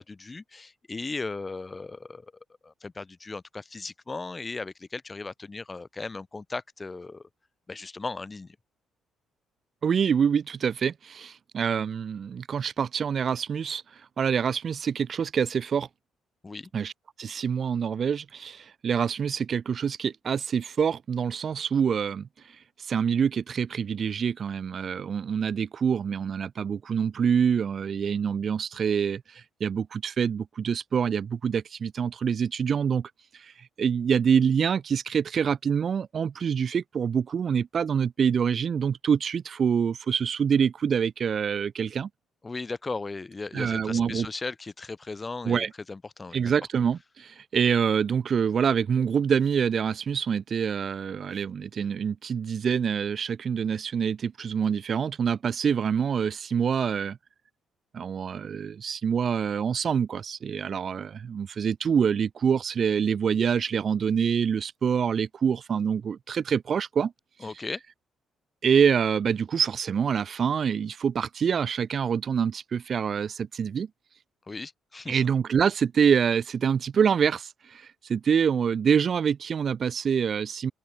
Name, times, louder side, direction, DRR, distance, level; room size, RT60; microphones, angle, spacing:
voice 1, 0.0-2.3 2.6-7.3 7.7-8.6 16.4-16.7 42.4-46.5 67.4-67.8 74.5-75.2, left 3 dB, 20° left, 4.4 m, -37 dB
voice 2, 9.8-15.9 16.7-16.9 17.2-22.3 22.8-42.1 43.5-44.3 45.4-45.7 46.3-57.2 57.9-67.1 68.6-73.9 75.1-80.7, right 7 dB, 40° right, 2.4 m, -26 dB
open air
cardioid pair, 145°, 0 cm